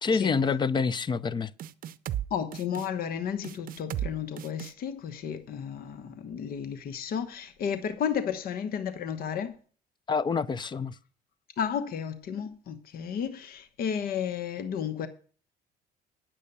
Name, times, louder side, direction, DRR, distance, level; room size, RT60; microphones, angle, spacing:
voice 1, 0.0-1.5 10.1-11.0, left 5 dB, 25° left, 0.5 m, -27 dB
sound 1, 1.6-2.3 2.5-2.9 3.4-4.1 4.4-4.7, right 11 dB, 55° right, 0.6 m, -34 dB
voice 2, 2.3-9.5 11.6-15.1, left 8 dB, 60° left, 1.1 m, -33 dB
9.6 x 7.4 x 6.8 m
cardioid pair, 110°, 17 cm